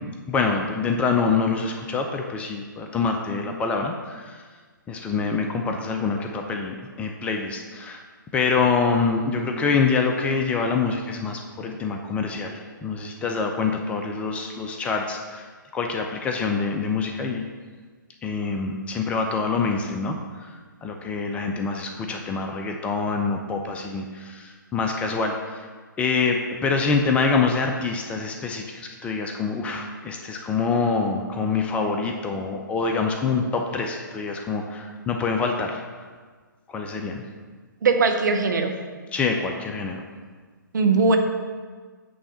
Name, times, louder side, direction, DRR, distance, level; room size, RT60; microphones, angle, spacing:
voice 1, 0.3-4.4 4.9-8.0 8.3-17.4 18.2-25.7 26.0-35.8 36.7-37.2 39.1-40.0, left 4 dB, 10° left, 3 dB, 0.4 m, -26 dB
voice 2, 37.8-38.8 40.7-41.2, right 4 dB, 60° right, 5 dB, 0.8 m, -20 dB
8.6 x 3.3 x 5.5 m, 1.5 s
figure-of-eight pair, 130°, 11 cm